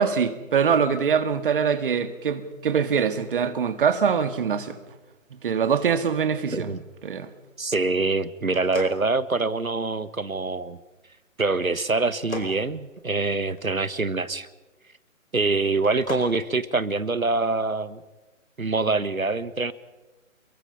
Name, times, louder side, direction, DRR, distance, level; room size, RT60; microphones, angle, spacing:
voice 1, 0.0-4.8 5.4-6.7 7.0-7.3, right 6 dB, 40° right, 1.8 m, -23 dB
voice 2, 6.5-6.8 7.6-10.8 11.4-14.5 15.3-18.0 18.6-19.7, right 3 dB, 85° right, 1.5 m, -25 dB
sound 1, 8.5-9.9 12.0-13.6 15.7-16.4, left 3 dB, 75° left, 4.8 m, -37 dB
28.5 x 23.0 x 5.5 m
figure-of-eight pair, 140°, 40 cm